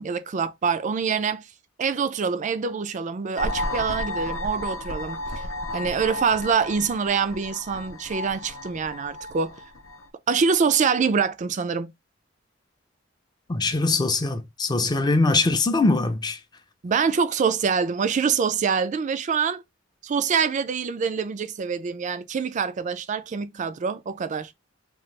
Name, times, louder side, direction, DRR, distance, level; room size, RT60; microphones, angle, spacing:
voice 1, 0.0-1.5 1.8-5.2 5.7-9.6 10.3-11.9 16.8-19.6 20.0-24.5, right 6 dB, 40° right, 0.3 m, -25 dB
sound 1, 3.4-10.1, left 2 dB, 85° left, 0.6 m, -33 dB
voice 2, 13.5-16.4, left 3 dB, 20° left, 0.5 m, -22 dB
2.9 x 2.3 x 3.2 m
head